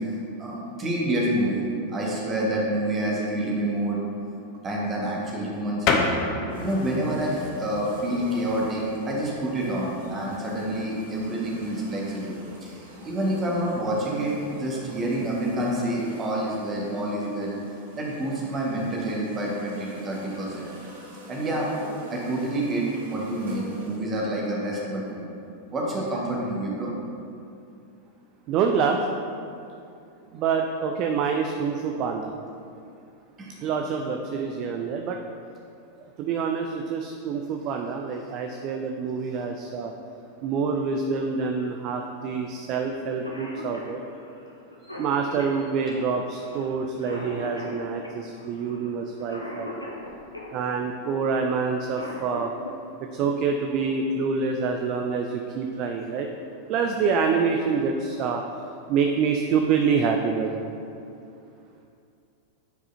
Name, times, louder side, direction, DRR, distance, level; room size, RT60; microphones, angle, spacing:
voice 1, 0.4-1.6 1.9-4.0 4.6-6.1 6.6-12.8 13.0-17.5 17.9-20.7 21.3-21.7 22.1-25.2 25.7-26.9 33.4-33.5, right 1 dB, 25° right, -4 dB, 1.5 m, -28 dB
sound 1, 5.8-16.0, left 3 dB, 40° left, 0.6 m, -34 dB
sound 2, 6.5-24.0, right 1 dB, 65° right, 1.2 m, -45 dB
voice 2, 28.5-29.0 30.3-32.3 33.6-35.2 36.2-39.9 40.4-44.0 44.9-49.8 50.5-52.5 53.1-56.3 56.7-58.4 58.9-60.6, right 5 dB, 40° right, 3 dB, 0.4 m, -26 dB
Cough, 42.9-43.0 43.2-50.5 51.7-52.7 54.4-54.5 55.5-55.8 56.2-56.3 56.7-57.2, left 1 dB, 85° left, 0.7 m, -39 dB
9.0 x 4.8 x 2.7 m, 2.5 s
figure-of-eight pair, 90°, 0 cm